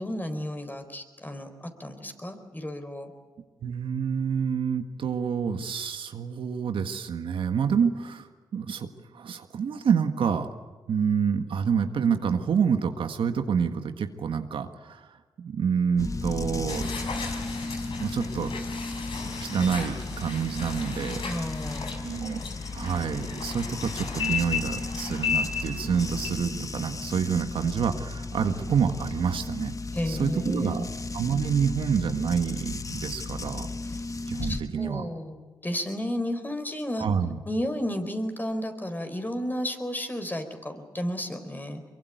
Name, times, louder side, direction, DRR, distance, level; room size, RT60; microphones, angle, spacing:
voice 1, 0.0-1.5 1.8-3.1 21.2-22.0 29.9-30.9 33.9-34.0 34.4-37.1 37.5-41.8, left 1 dB, 20° left, 7 dB, 4.4 m, -32 dB
voice 2, 3.6-8.3 8.5-10.5 10.9-15.1 15.4-16.9 18.0-18.5 19.5-21.2 22.0-22.4 22.7-29.7 30.1-30.8 31.1-33.7 34.3-35.0 37.0-37.4, right 6 dB, 75° right, 7 dB, 1.7 m, -27 dB
sound 1, 16.0-34.6, left 3 dB, 40° left, 1.2 m, -35 dB
sound 2, 16.7-26.3, left 6 dB, 70° left, 5.1 m, -35 dB
23.5 x 23.0 x 9.4 m, 1.3 s
supercardioid pair, 50°, 9 cm